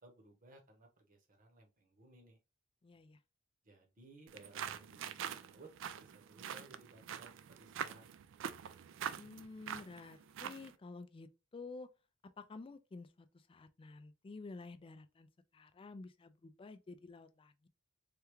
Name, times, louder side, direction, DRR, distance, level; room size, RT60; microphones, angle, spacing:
voice 1, 0.0-2.4 3.6-5.7 6.0-8.1, right 2 dB, 40° right, 0.9 m, -60 dB
voice 2, 2.8-3.2 9.2-11.9 12.4-15.3 15.5-17.7, left 3 dB, 25° left, 0.3 m, -51 dB
sound 1, 4.3-10.7, right 8 dB, 65° right, 0.3 m, -45 dB
3.3 x 2.3 x 3.0 m
head